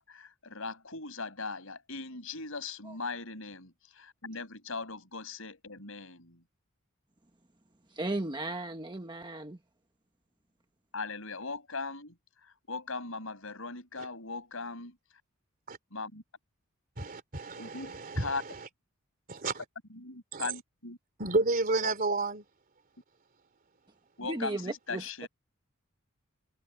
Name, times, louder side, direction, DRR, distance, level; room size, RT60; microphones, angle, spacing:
voice 1, 0.0-6.4 10.9-12.2 12.4-15.0 15.9-16.2 17.6-18.4 19.9-21.0 24.2-25.3, left 4 dB, 70° left, 6.5 m, -39 dB
voice 2, 8.0-9.6 24.3-25.3, right 2 dB, 20° right, 1.1 m, -35 dB
voice 3, 17.0-18.3 19.3-19.6 20.3-20.4 21.2-22.4, right 3 dB, 40° right, 3.1 m, -30 dB
head